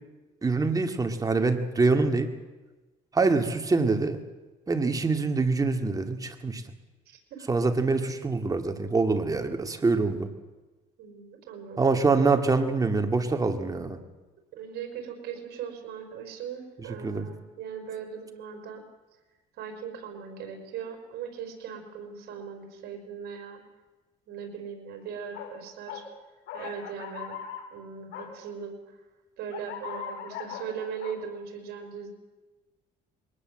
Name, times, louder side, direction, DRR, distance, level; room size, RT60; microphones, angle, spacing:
voice 1, 0.4-2.3 3.1-4.2 4.7-6.6 7.5-10.3 11.8-14.0 17.0-17.3, right 3 dB, 20° right, 6 dB, 2.3 m, -25 dB
voice 2, 7.1-7.5 11.0-12.0 14.5-18.8 19.6-23.6 24.3-26.0 26.5-27.4 27.7-28.8 29.4-32.1, right 7 dB, 75° right, 5 dB, 5.3 m, -39 dB
sound 1, 25.3-25.5 25.9-26.0 26.5-27.6 28.1-28.3 29.5-31.2, left 8 dB, 85° left, 3.7 m, -39 dB
22.0 x 19.0 x 7.7 m, 1.2 s
cardioid pair, 110°, 17 cm